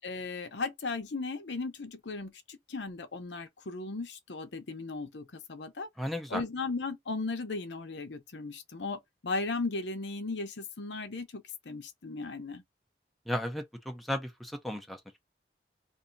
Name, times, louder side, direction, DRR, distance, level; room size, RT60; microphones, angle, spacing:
voice 1, 0.0-5.9 6.3-12.6, left 3 dB, 85° left, 0.8 m, -36 dB
voice 2, 6.0-6.4 13.3-15.2, left 1 dB, ahead, 0.6 m, -35 dB
2.6 x 2.4 x 3.8 m
head